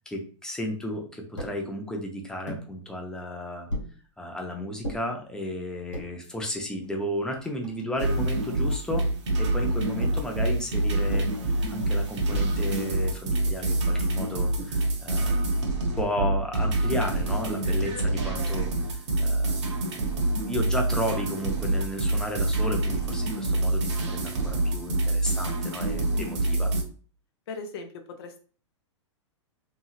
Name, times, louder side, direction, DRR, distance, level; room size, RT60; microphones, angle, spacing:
voice 1, 0.1-3.7 4.2-9.1 9.4-15.7 16.0-20.1 20.4-26.7, equal, 5° left, 1 dB, 0.6 m, -33 dB
sound 1, 1.4-1.6 2.5-2.7 3.7-3.9 4.8-5.0 5.7-6.1 6.8-6.9 7.2-8.2 10.0-10.4 11.1-11.4 12.3-12.6 13.5-13.8 14.6-14.9 15.9-16.2 17.1-17.6, equal, 85° left, 1.3 m, -35 dB
sound 2, 8.0-26.8, right 2 dB, 65° right, 0.8 m, -26 dB
voice 2, 27.5-28.4, left 4 dB, 55° left, 5 dB, 0.6 m, -38 dB
2.8 x 2.7 x 2.4 m, 0.39 s
figure-of-eight pair, 105°, 16 cm